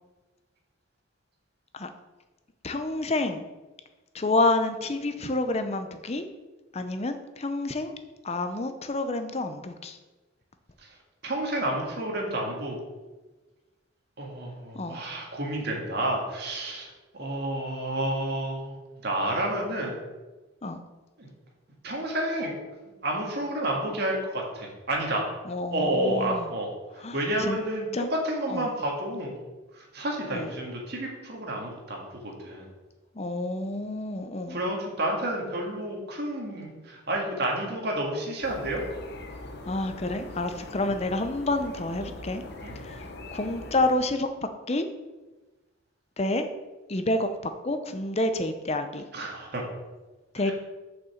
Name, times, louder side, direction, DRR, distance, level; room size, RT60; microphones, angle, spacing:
voice 1, 2.6-3.4 4.1-6.3 6.7-7.9 8.2-10.0 14.7-15.0 20.6-20.8 25.5-26.5 27.0-27.6 27.9-28.1 28.5-28.6 30.3-30.5 33.2-34.6 39.7-42.4 42.8-43.0 43.3-44.3 44.7-44.9 46.2-46.5 46.9-47.3 47.6-49.1 50.3-50.5, left 2 dB, 30° left, 8 dB, 0.6 m, -28 dB
voice 2, 11.2-12.8 14.2-16.9 17.2-18.7 19.0-20.0 21.2-21.3 21.8-22.6 23.0-25.2 25.7-29.3 29.7-32.7 34.5-38.9 40.9-41.0 42.6-42.8 49.1-49.6 50.4-50.5, right 1 dB, 50° right, -1 dB, 1.9 m, -30 dB
sound 1, 38.4-43.9, left 2 dB, 50° left, 0.9 m, -41 dB
6.7 x 5.6 x 7.2 m, 1.2 s
head